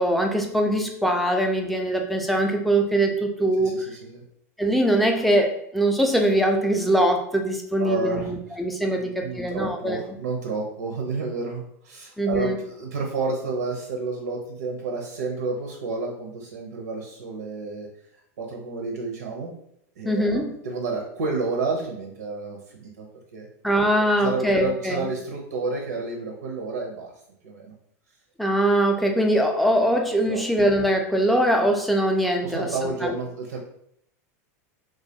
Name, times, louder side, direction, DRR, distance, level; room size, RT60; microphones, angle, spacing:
voice 1, 0.0-3.9 4.6-10.0 12.2-12.6 20.0-20.5 23.6-25.1 28.4-33.1, right 1 dB, ahead, 2 dB, 0.4 m, -22 dB
voice 2, 3.6-4.2 7.8-8.3 8.9-17.9 18.4-19.5 20.0-23.1 23.3-23.5 24.0-27.1 27.4-27.7 30.2-30.4 32.4-33.6, right 3 dB, 90° right, 1 dB, 0.5 m, -30 dB
2.2 x 2.2 x 2.7 m, 0.71 s
hypercardioid pair, 110°, 9 cm